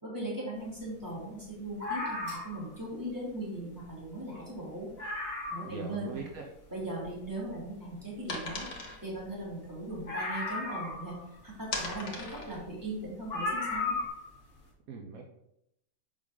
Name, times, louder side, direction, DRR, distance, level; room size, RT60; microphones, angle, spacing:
voice 1, 0.0-4.9 5.5-6.2 6.7-8.7 9.0-11.1 11.4-13.9, right 1 dB, 15° right, -6 dB, 2.8 m, -39 dB
sound 1, 1.8-2.7 3.8-3.9 4.2-4.3 4.7-4.8 5.0-5.8 6.3-6.4 10.1-11.3 12.5-12.6 13.3-14.3 14.5-14.6, left 3 dB, 45° left, 2.0 m, -34 dB
voice 2, 5.6-6.5 14.9-15.3, right 4 dB, 75° right, 1 dB, 1.3 m, -40 dB
sound 2, 7.0-11.0 11.4-14.1, left 3 dB, 85° left, 1.8 m, -41 dB
7.1 x 5.1 x 3.8 m, 0.78 s
omnidirectional pair, 1.6 m